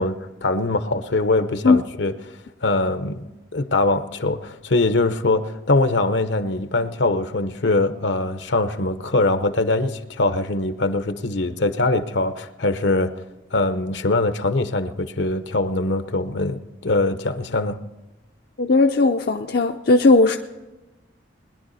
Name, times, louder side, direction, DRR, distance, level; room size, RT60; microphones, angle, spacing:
voice 1, 0.0-13.1 13.5-17.8, left 2 dB, 75° left, 0.9 m, -22 dB
voice 2, 18.6-20.4, left 3 dB, 55° left, 0.6 m, -16 dB
21.0 x 11.0 x 4.2 m
head